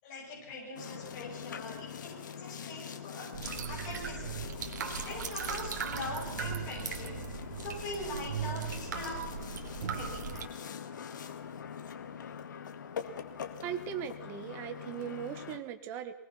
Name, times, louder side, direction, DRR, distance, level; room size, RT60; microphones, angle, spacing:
voice 1, 0.0-3.3 3.7-4.5 5.0-7.2 7.6-9.2 9.9-10.3, left 2 dB, 30° left, -4 dB, 7.2 m, -42 dB
Boat Water vehicle, 0.7-15.6, left 7 dB, 75° left, 2.2 m, -43 dB
sound 1, 3.3-10.5, right 7 dB, 65° right, 2.8 m, -38 dB
voice 2, 13.6-16.1, right 9 dB, 25° right, 8 dB, 1.7 m, -39 dB
24.0 x 20.0 x 5.9 m, 0.79 s
hypercardioid pair, 165°, 10 cm